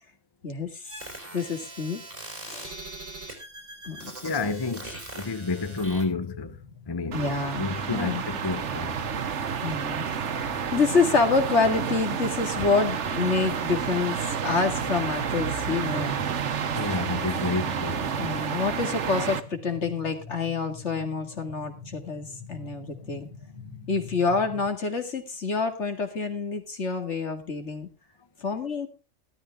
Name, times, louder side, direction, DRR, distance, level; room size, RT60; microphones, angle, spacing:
voice 1, 0.4-1.0 1.3-2.0 2.4-2.7 3.9-4.3 7.1-8.2 9.6-16.2 18.2-23.3 23.9-27.9 28.4-28.9, left 4 dB, 70° left, 2.5 m, -27 dB
sound 1, 0.8-6.0, right 2 dB, 45° right, 4.7 m, -41 dB
voice 2, 4.2-6.5 6.9-7.2 7.6-9.0 16.8-18.1, left 3 dB, 25° left, 0.8 m, -30 dB
sound 2, 5.7-24.7, left 5 dB, 25° right, 5.1 m, -45 dB
sound 3, 7.1-19.4, right 7 dB, 75° right, 1.3 m, -30 dB
14.0 x 13.5 x 3.5 m
omnidirectional pair, 1.2 m